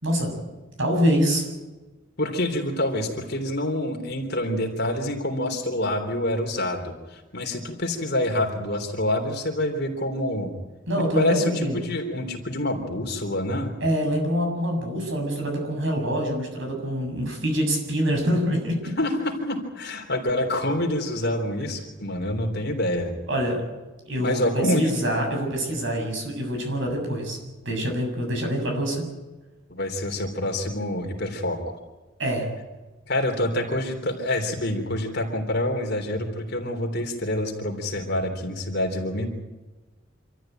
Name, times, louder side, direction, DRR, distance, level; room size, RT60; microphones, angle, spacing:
voice 1, 0.0-0.3 0.8-1.4 10.9-11.8 13.8-19.0 23.3-23.6 24.1-29.0 32.2-32.5, equal, 60° right, 2 dB, 7.4 m, -25 dB
voice 2, 2.2-10.5 11.2-13.7 19.0-23.1 24.2-24.9 29.7-31.8 33.1-39.3, left 1 dB, 50° left, 2 dB, 3.6 m, -27 dB
26.5 x 14.0 x 9.1 m, 1.2 s
head